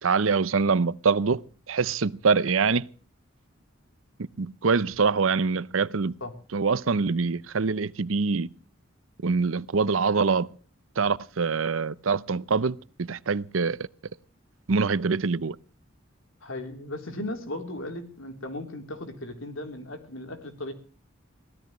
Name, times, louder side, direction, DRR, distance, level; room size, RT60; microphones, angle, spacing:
voice 1, 0.0-2.9 4.2-6.1 6.5-8.5 9.2-10.5 11.0-13.9 14.7-15.6, right 4 dB, 80° right, 0.7 m, -24 dB
voice 2, 16.4-20.7, left 1 dB, 80° left, 3.5 m, -36 dB
24.0 x 16.5 x 3.1 m
head